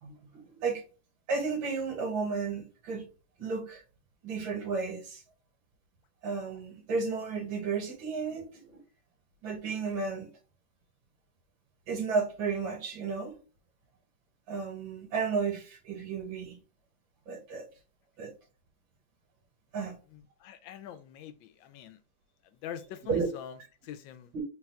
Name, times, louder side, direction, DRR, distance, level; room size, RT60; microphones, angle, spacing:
voice 1, 0.0-0.8 1.3-3.1 3.4-3.8 4.2-5.2 6.2-8.8 9.4-10.3 11.9-13.4 14.5-16.6 17.3-17.7 18.2-18.3 19.7-20.0 23.1-23.3 24.3-24.4, right 5 dB, 85° right, 2.0 m, -33 dB
voice 2, 20.1-22.0 22.4-24.3, left 9 dB, 80° left, 1.3 m, -44 dB
4.0 x 2.3 x 4.2 m
omnidirectional pair, 2.1 m